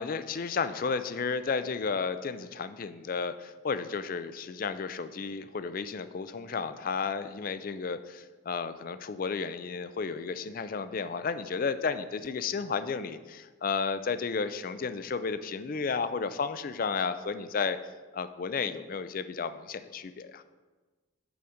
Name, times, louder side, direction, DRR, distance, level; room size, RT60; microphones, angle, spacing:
voice 1, 0.0-17.8 18.1-20.4, left 5 dB, 40° left, 12 dB, 0.4 m, -33 dB
7.0 x 5.0 x 6.2 m, 1.3 s
head